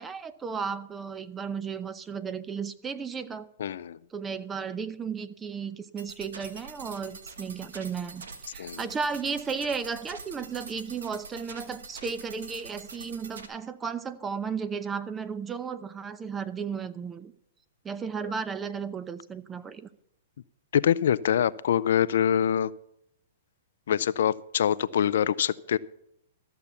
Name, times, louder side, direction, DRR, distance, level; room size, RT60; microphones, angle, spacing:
voice 1, 0.0-3.5 4.1-8.3 8.5-17.3 17.8-19.9, right 6 dB, 15° right, 14 dB, 0.7 m, -34 dB
voice 2, 3.6-4.0 8.6-8.8 20.7-22.7 23.9-25.8, left 9 dB, 70° left, 17 dB, 0.4 m, -24 dB
sound 1, 6.0-13.5, right 4 dB, 80° right, 1.4 m, -45 dB
13.5 x 6.8 x 7.1 m, 0.77 s
hypercardioid pair, 125°, 0 cm